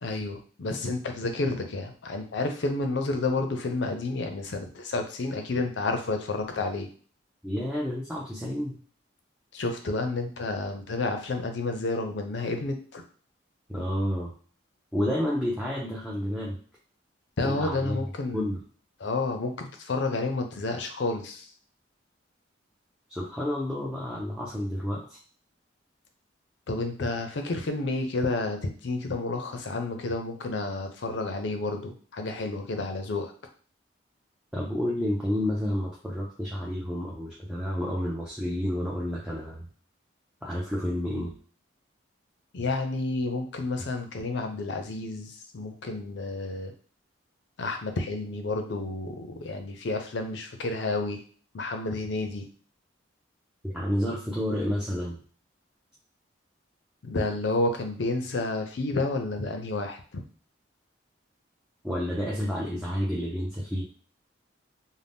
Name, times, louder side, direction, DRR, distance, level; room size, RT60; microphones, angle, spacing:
voice 1, 0.0-6.9 9.5-13.0 17.4-18.6 19.0-21.5 26.7-33.3 42.5-46.7 47.6-51.2 51.5-52.5 57.0-60.2, left 2 dB, 65° left, 5 dB, 0.5 m, -30 dB
voice 2, 7.4-8.8 13.7-14.3 14.9-16.6 17.4-18.0 18.3-18.6 23.1-25.2 34.5-39.7 40.4-41.3 53.6-55.2 61.8-63.9, equal, 5° right, -6 dB, 0.4 m, -30 dB
2.6 x 2.1 x 3.4 m, 0.43 s
head